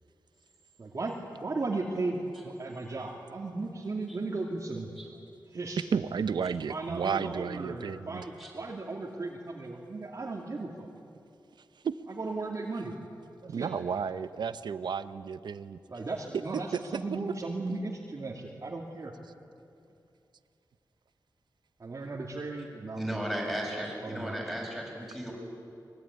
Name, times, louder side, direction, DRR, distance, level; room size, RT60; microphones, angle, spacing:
voice 1, 0.8-2.2 2.4-4.9 5.5-5.8 6.7-10.9 12.1-12.9 13.4-13.7 15.9-19.1 21.8-23.3 24.0-24.4, right 3 dB, 45° right, -2 dB, 2.6 m, -36 dB
voice 2, 5.9-8.3 11.8-11.9 13.5-15.8 16.7-17.0, right 6 dB, 85° right, 12 dB, 0.9 m, -32 dB
voice 3, 22.9-25.3, equal, ahead, -2 dB, 8.0 m, -35 dB
24.0 x 22.5 x 9.8 m, 2.6 s
wide cardioid pair, 105°, 7 cm